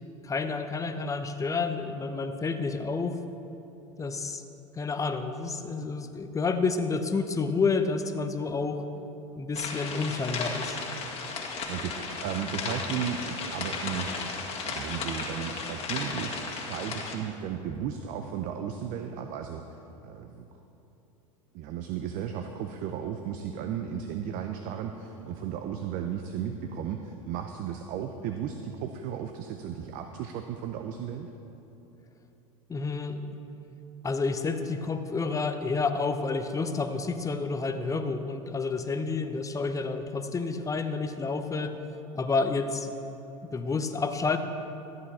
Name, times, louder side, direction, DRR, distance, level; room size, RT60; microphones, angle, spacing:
voice 1, 0.2-3.1 4.0-4.4 4.7-8.8 9.4-10.8 32.7-33.3 34.0-41.8 42.1-42.9 43.4-44.4, left 4 dB, 20° left, 8 dB, 0.8 m, -29 dB
sound 1, 9.5-17.1, left 4 dB, 35° left, 1.8 m, -35 dB
voice 2, 11.7-14.1 14.6-19.6 20.0-20.4 21.5-31.3, right 8 dB, 55° right, 6 dB, 0.7 m, -35 dB
13.5 x 9.6 x 4.3 m, 3.0 s
hypercardioid pair, 90°, 17 cm